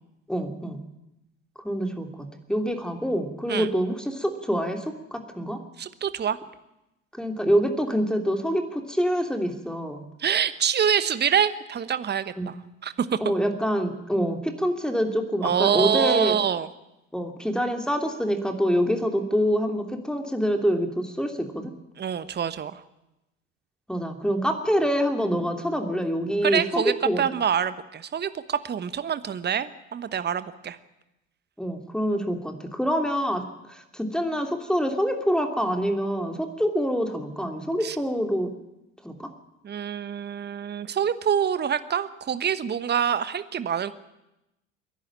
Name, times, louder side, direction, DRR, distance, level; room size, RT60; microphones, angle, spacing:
voice 1, 0.3-0.8 1.6-5.6 7.1-10.0 12.4-12.5 13.2-16.3 17.1-21.7 23.9-27.3 31.6-38.5 39.0-39.3, equal, ahead, 4 dB, 3.1 m, -26 dB
voice 2, 5.8-6.4 10.2-12.5 12.8-13.3 15.4-16.7 22.0-22.8 26.4-30.8 37.8-38.0 39.6-43.9, right 8 dB, 25° right, 14 dB, 1.1 m, -26 dB
29.5 x 11.0 x 8.8 m, 0.93 s
figure-of-eight pair, 60°, 38 cm